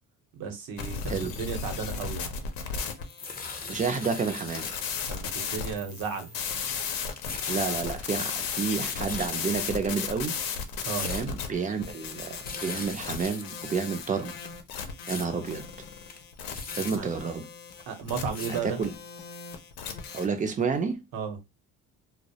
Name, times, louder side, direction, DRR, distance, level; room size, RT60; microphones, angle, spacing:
voice 1, 0.3-2.3 5.1-6.3 10.8-11.1 16.9-17.1 17.9-18.8 21.1-21.4, right 6 dB, 80° right, 0.8 m, -34 dB
sound 1, 0.8-20.3, left 6 dB, 90° left, 0.6 m, -36 dB
sound 2, 1.6-2.6 2.9-4.9 5.2-5.3 6.0-6.5 6.8-7.8 8.2-9.7 10.2-10.3 10.6-11.2 11.6-11.7 12.0-12.1 12.3-13.4 13.8-13.9 14.3-15.3 15.7-15.8 16.0-17.0 17.7-17.8 18.1-18.5 19.1-19.2 19.9-20.0 20.4-20.5 20.7-20.8, left 5 dB, 25° left, 0.5 m, -40 dB
voice 2, 3.7-4.7 7.5-10.4 11.0-14.3 15.1-15.7 16.8-17.5 18.5-18.9 20.1-21.0, right 5 dB, 25° right, 0.4 m, -30 dB
2.2 x 2.0 x 2.7 m
cardioid pair, 105°, 34 cm